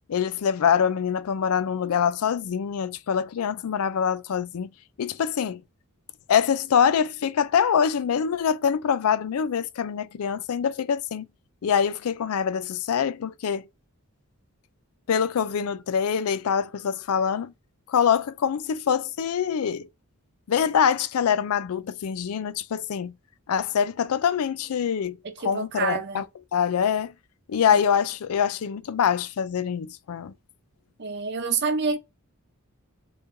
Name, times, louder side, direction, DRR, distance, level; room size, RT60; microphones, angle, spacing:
voice 1, 0.1-4.7 5.0-5.6 6.3-11.3 11.6-13.7 15.1-17.5 17.9-19.9 20.5-23.1 23.5-26.3 26.5-27.1 27.5-30.3, left 7 dB, 75° left, 0.4 m, -24 dB
voice 2, 25.2-26.2 31.0-32.0, right 5 dB, 50° right, 0.7 m, -27 dB
4.3 x 3.2 x 2.5 m
head